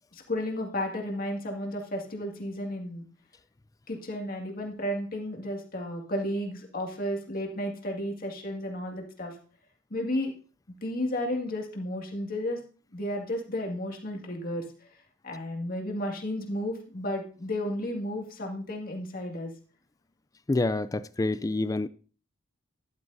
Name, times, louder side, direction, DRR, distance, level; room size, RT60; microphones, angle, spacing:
voice 1, 0.1-3.1 3.9-9.4 9.9-10.3 10.8-12.6 12.9-14.6 15.2-19.5, left 1 dB, 45° left, 2.1 m, -33 dB
voice 2, 20.5-21.9, left 2 dB, 15° left, 0.4 m, -27 dB
12.5 x 11.0 x 2.7 m
head